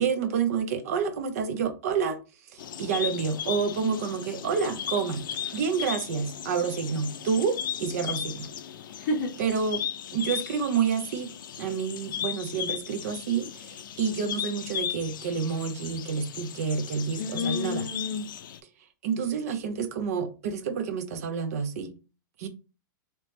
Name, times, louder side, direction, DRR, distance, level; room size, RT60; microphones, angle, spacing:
voice 1, 0.0-5.3 5.5-8.5 9.4-9.8 10.1-11.3 11.6-17.9 19.0-21.9 22.4-22.5, right 6 dB, 50° right, 0.6 m, -29 dB
sound 1, 2.6-18.6, left 10 dB, 85° left, 0.4 m, -36 dB
voice 2, 9.0-9.3 17.2-18.2, left 3 dB, 40° left, 0.7 m, -30 dB
3.1 x 2.9 x 3.2 m
supercardioid pair, 170°, 11 cm